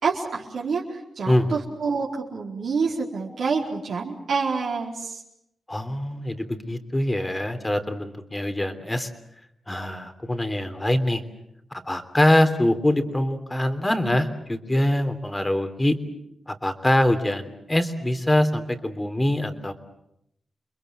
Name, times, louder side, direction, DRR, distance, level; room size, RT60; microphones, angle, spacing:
voice 1, 0.0-5.2, right 5 dB, 80° right, -3 dB, 4.5 m, -27 dB
voice 2, 1.3-1.6 5.7-9.1 9.7-11.2 11.8-15.9 16.5-19.7, left 1 dB, 20° left, 8 dB, 3.3 m, -23 dB
29.0 x 21.5 x 8.1 m, 0.80 s
cardioid pair, 55°, 0 cm